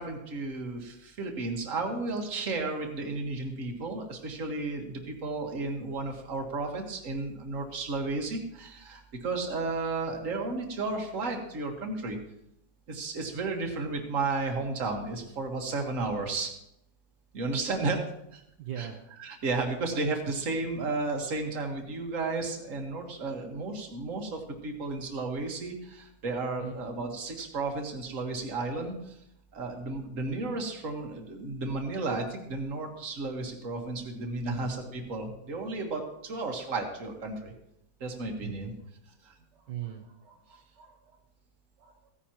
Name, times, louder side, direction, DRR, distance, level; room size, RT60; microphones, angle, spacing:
voice 1, 0.0-12.2 12.9-16.5 17.3-18.4 18.8-29.2 29.5-37.5 38.0-38.7 39.2-39.3, right 3 dB, 45° right, 2 dB, 1.8 m, -33 dB
voice 2, 18.6-19.0 26.6-26.7 34.4-34.7 38.4-38.5 39.7-40.3 40.8-40.9 41.8-42.1, right 10 dB, 70° right, 2 dB, 1.5 m, -39 dB
15.5 x 10.0 x 3.0 m, 0.79 s
omnidirectional pair, 2.0 m